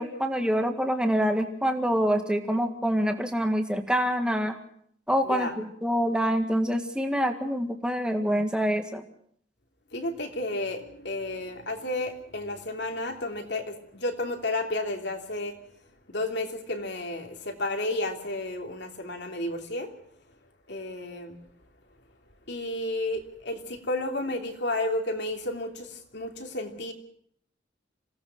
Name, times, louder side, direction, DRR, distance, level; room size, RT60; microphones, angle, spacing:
voice 1, 0.0-4.6 5.1-9.0, equal, 5° right, 4 dB, 1.9 m, -26 dB
voice 2, 9.9-15.5 16.1-19.9 20.7-21.4 22.5-26.9, left 1 dB, 60° left, 3 dB, 3.1 m, -32 dB
26.5 x 17.5 x 6.1 m, 0.66 s
head